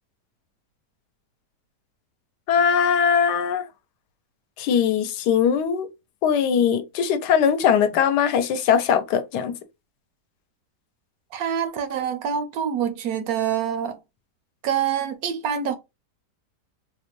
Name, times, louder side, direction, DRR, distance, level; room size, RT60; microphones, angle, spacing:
voice 1, 2.5-3.6 4.6-5.9 6.2-9.5, left 7 dB, 80° left, 1.2 m, -20 dB
voice 2, 11.3-14.0 14.6-15.8, right 8 dB, 70° right, 0.9 m, -26 dB
4.1 x 2.1 x 2.9 m
omnidirectional pair, 1.8 m